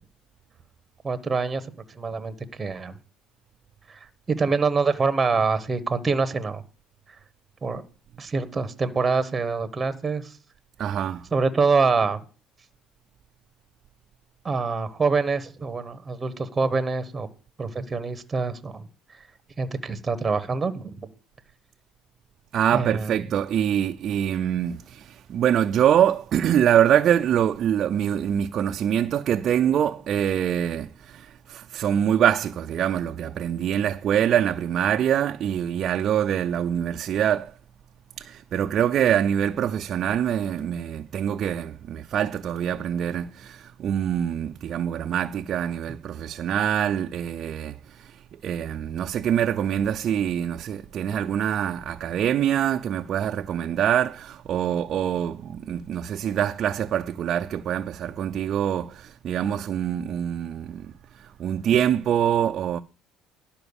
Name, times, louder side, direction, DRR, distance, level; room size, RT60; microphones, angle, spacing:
voice 1, 1.0-1.6 2.0-2.9 4.3-6.6 7.6-7.8 8.2-10.2 11.3-12.2 14.4-17.3 17.6-18.8 19.6-21.0 22.7-23.2, right 4 dB, 20° right, 1.0 m, -25 dB
voice 2, 10.8-11.2 22.5-37.5 38.2-62.8, right 9 dB, 50° right, 0.4 m, -24 dB
11.0 x 4.4 x 7.0 m
cardioid pair, 120°, 0 cm